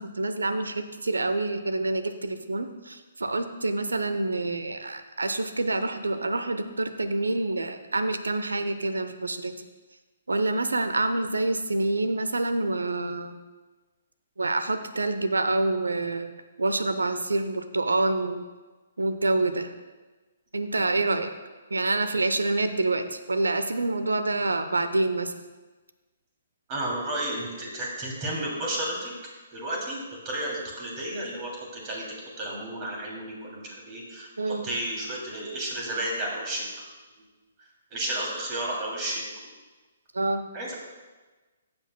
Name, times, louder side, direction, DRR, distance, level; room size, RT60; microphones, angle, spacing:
voice 1, 0.0-9.5 10.3-13.4 14.4-18.4 19.0-19.7 20.5-21.3 21.7-25.3 34.4-34.7 40.1-40.4, right 2 dB, 80° right, 9 dB, 0.7 m, -27 dB
voice 2, 26.7-29.1 29.5-36.6 37.9-39.2 40.5-40.7, right 1 dB, 30° right, -2 dB, 2.8 m, -32 dB
15.0 x 7.9 x 2.2 m, 1.3 s
figure-of-eight pair, 130°, 0 cm